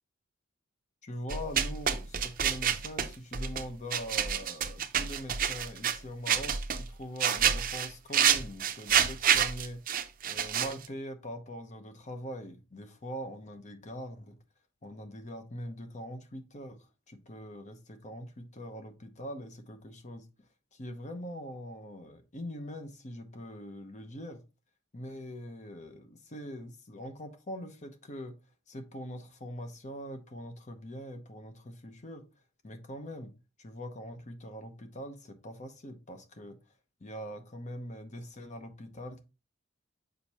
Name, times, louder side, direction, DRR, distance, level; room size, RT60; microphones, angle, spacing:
voice 1, 1.0-9.8 10.2-14.4 14.8-16.8 17.1-20.2 20.7-24.4 24.9-28.4 28.7-32.2 32.6-33.3 33.6-36.6 37.0-39.2, equal, 35° left, 0.9 m, -42 dB
sound 1, 1.3-3.6 3.9-6.0 6.3-6.9 7.2-10.9, right 8 dB, 45° right, 0.6 m, -28 dB
6.6 x 5.4 x 2.9 m
head